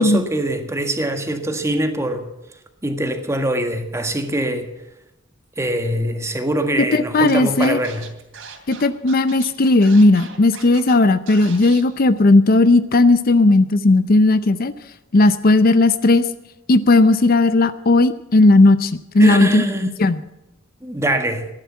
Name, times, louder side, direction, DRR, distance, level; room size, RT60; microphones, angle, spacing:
voice 1, 0.0-2.2 2.8-4.7 5.6-8.1 19.2-19.9 20.8-21.5, right 1 dB, 15° right, 1.6 m, -23 dB
voice 2, 6.9-7.8 8.7-14.7 15.1-16.2 16.7-19.6 20.0-20.2, left 2 dB, 50° left, 0.6 m, -15 dB
Scratching (performance technique), 7.3-7.4 7.6-10.9 11.3-11.8, right 6 dB, 80° right, 2.9 m, -39 dB
15.0 x 10.5 x 7.3 m
head